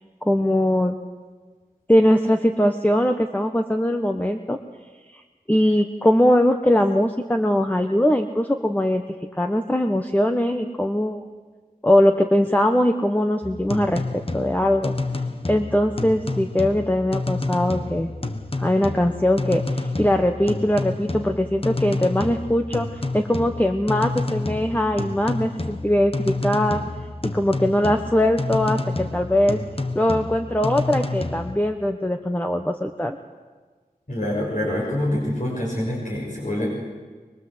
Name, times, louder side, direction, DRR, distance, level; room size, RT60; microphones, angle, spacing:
voice 1, 0.2-1.0 1.9-4.6 5.5-9.0 9.4-11.2 11.8-14.9 15.5-18.1 18.6-26.8 27.2-29.6 29.9-33.2, left 1 dB, 10° left, 5 dB, 1.1 m, -21 dB
sound 1, 13.4-31.6, left 2 dB, 40° left, 1.5 m, -29 dB
voice 2, 34.1-36.7, left 1 dB, 55° left, -3 dB, 6.3 m, -25 dB
24.0 x 21.5 x 8.0 m, 1.4 s
wide cardioid pair, 55°, 15 cm